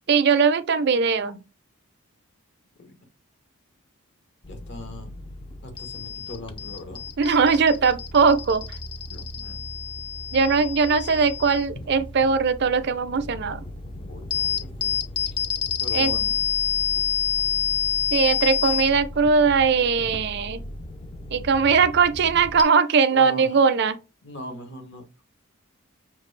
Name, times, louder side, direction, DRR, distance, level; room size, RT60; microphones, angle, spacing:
voice 1, 0.1-1.4 7.2-8.6 10.3-13.6 15.9-16.1 18.1-20.6 21.3-24.0, right 5 dB, 50° right, 0.4 m, -20 dB
sound 1, 4.4-22.6, left 8 dB, 25° left, 0.3 m, -29 dB
voice 2, 4.5-5.1 5.6-7.0 9.1-9.6 13.9-15.4 15.8-16.4 23.1-23.6 24.2-25.0, left 1 dB, 50° left, 0.9 m, -40 dB
5.8 x 2.3 x 3.2 m
head